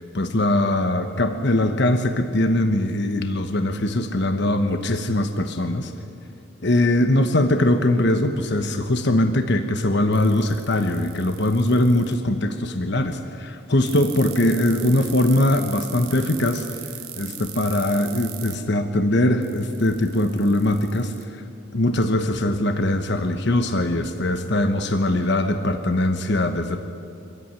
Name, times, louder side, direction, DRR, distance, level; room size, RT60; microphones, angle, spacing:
voice 1, 0.1-5.9 6.6-16.7 17.2-21.4 21.7-26.8, left 1 dB, 55° left, 7 dB, 1.1 m, -21 dB
sound 1, 10.1-12.1 13.9-18.5 19.4-21.2, right 13 dB, 85° right, 1.9 m, -38 dB
24.5 x 15.0 x 9.7 m, 2.7 s
head